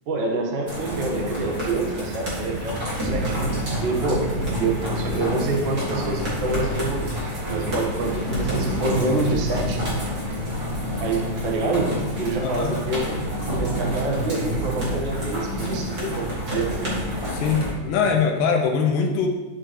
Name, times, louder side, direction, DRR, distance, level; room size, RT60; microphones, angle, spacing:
voice 1, 0.1-3.2 3.8-4.3 4.6-7.1 7.5-9.9 11.0-13.3 13.6-17.0, right 2 dB, 65° right, 0 dB, 1.2 m, -27 dB
sound 1, 0.7-17.7, equal, 30° right, 2.0 m, -29 dB
sound 2, 2.7-18.4, equal, 5° left, 1.7 m, -32 dB
voice 2, 12.4-12.7 17.3-19.3, left 5 dB, 80° left, 2 dB, 2.4 m, -22 dB
12.5 x 5.0 x 3.0 m, 1.2 s
omnidirectional pair, 3.9 m